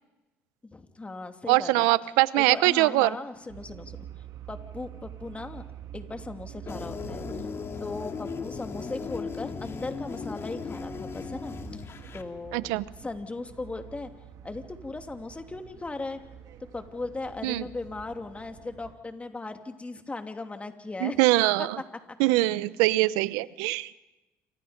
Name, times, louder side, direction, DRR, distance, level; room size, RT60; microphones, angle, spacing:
voice 1, 0.6-1.9 2.3-4.1 4.5-5.6 5.9-7.2 7.8-11.8 12.1-12.7 13.0-14.1 14.4-16.2 16.7-21.2 21.6-21.7, left 3 dB, 20° left, 6 dB, 3.0 m, -37 dB
voice 2, 1.5-3.2 12.5-12.8 17.4-17.6 21.0-21.8 22.2-23.9, right 19 dB, 80° right, 18 dB, 0.8 m, -23 dB
sound 1, 3.5-19.0, right 10 dB, 65° right, 2.3 m, -47 dB
sound 2, 6.7-12.2, left 5 dB, 45° left, 2.7 m, -37 dB
28.5 x 25.0 x 5.3 m, 1.0 s
hypercardioid pair, 70°, 6 cm